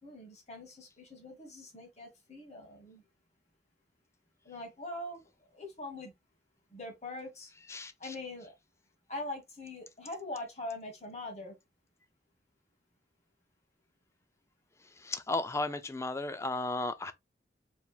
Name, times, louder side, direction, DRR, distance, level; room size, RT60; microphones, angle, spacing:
voice 1, 0.0-3.0 4.4-5.2 5.5-6.1 6.7-7.5 7.8-8.5 9.1-11.6, left 2 dB, 40° left, 1.7 m, -43 dB
voice 2, 7.7-8.1 14.8-17.1, left 2 dB, 15° left, 0.4 m, -35 dB
4.7 x 3.6 x 2.3 m
head